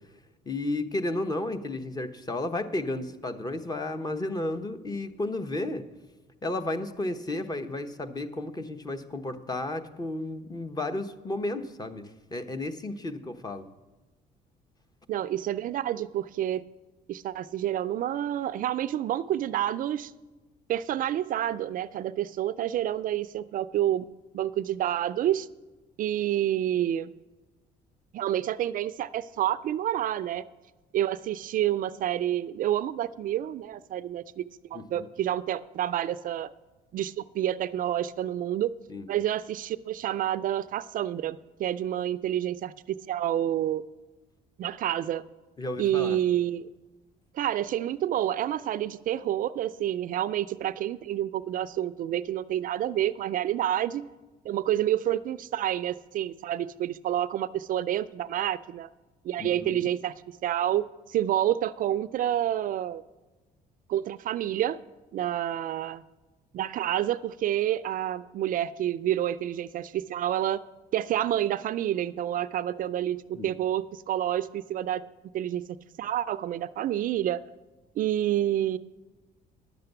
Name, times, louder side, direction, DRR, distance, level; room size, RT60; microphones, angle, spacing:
voice 1, 0.4-5.8 6.4-13.7 34.7-35.1 38.9-39.1 45.6-46.2 59.4-59.9 73.3-73.5, left 2 dB, 25° left, 8 dB, 0.9 m, -33 dB
voice 2, 15.1-16.6 17.1-20.1 20.7-24.1 24.3-25.5 26.0-27.1 28.1-30.4 30.9-34.4 34.7-36.5 36.9-38.7 39.1-43.8 44.6-45.2 45.8-46.7 47.3-54.0 54.4-58.9 59.2-60.1 60.4-63.0 63.9-64.8 65.1-66.0 66.5-70.6 70.9-75.0 75.3-75.6 76.0-77.4 78.0-78.8, right 12 dB, 55° right, 13 dB, 0.4 m, -28 dB
10.5 x 6.8 x 7.9 m, 1.2 s
cardioid pair, 110°, 17 cm